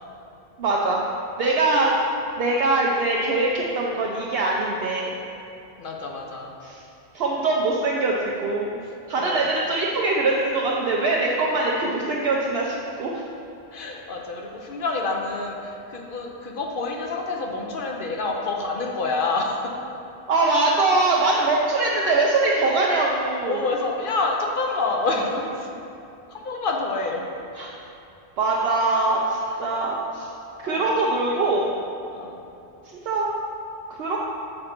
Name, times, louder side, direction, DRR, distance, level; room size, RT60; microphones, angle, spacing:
voice 1, 0.6-1.0 1.4-1.9 2.4-5.1 6.6-6.8 7.1-8.8 9.1-13.2 20.3-23.6 27.6-27.7 28.4-30.3 30.6-31.7 33.0-33.3 34.0-34.2, right 2 dB, 70° right, -3 dB, 0.9 m, -22 dB
voice 2, 5.8-6.5 8.8-9.7 13.7-19.7 21.3-21.5 23.5-25.7 26.3-27.2 28.8-29.0 29.4-29.6 30.6-31.5 32.1-32.4, left 3 dB, 55° left, 1 dB, 0.9 m, -28 dB
6.6 x 5.2 x 4.4 m, 2.7 s
omnidirectional pair, 1.1 m